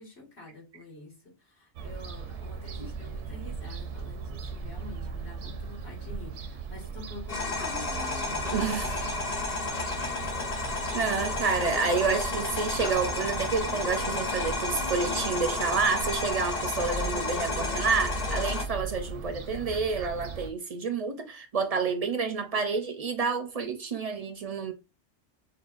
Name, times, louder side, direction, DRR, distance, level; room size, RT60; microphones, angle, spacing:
voice 1, 0.0-8.5, left 2 dB, 65° left, 1.9 m, -46 dB
Fowl / Gull seagull, 1.8-20.5, right 4 dB, 90° right, 1.0 m, -38 dB
sound 1, 7.3-18.7, left 3 dB, 40° left, 0.9 m, -32 dB
voice 2, 8.5-9.0 10.9-24.7, right 5 dB, 50° right, 0.4 m, -29 dB
5.9 x 2.2 x 2.4 m
omnidirectional pair, 1.2 m